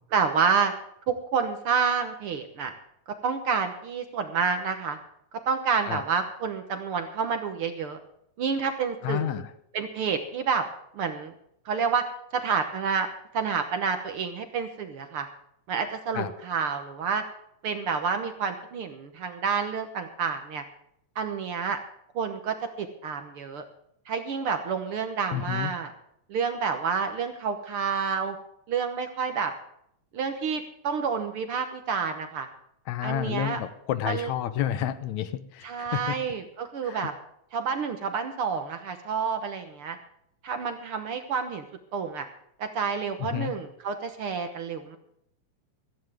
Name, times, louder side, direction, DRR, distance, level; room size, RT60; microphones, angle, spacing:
voice 1, 0.1-0.7 1.1-2.7 3.1-5.0 5.5-8.0 8.4-9.4 9.7-10.6 10.9-11.3 11.6-12.1 12.3-13.1 13.3-15.3 15.7-17.2 17.6-20.6 21.1-21.8 22.1-23.6 24.1-25.9 26.3-28.4 28.7-29.5 30.1-32.5 33.0-33.6 34.0-34.3 35.6-37.1 37.5-40.0 40.4-41.6 41.9-42.3 42.6-45.0, right 6 dB, 60° right, 7 dB, 1.7 m, -29 dB
voice 2, 9.0-9.5 16.1-16.3 25.3-25.7 32.9-36.2 36.8-37.1 43.2-43.5, left 11 dB, 75° left, 12 dB, 2.2 m, -30 dB
16.5 x 14.5 x 3.6 m, 0.73 s
omnidirectional pair, 3.4 m